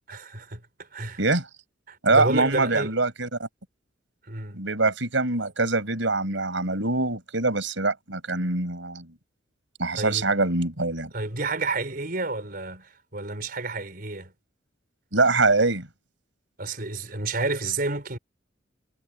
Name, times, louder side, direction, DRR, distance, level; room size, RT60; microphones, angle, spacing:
voice 1, 0.1-1.2 1.9-3.0 4.3-4.6 9.9-10.2 11.1-14.3 16.6-18.2, right 3 dB, 50° right, 4.2 m, -30 dB
voice 2, 2.0-3.5 4.5-9.1 9.8-11.1 15.1-15.9, right 3 dB, 75° right, 5.1 m, -24 dB
head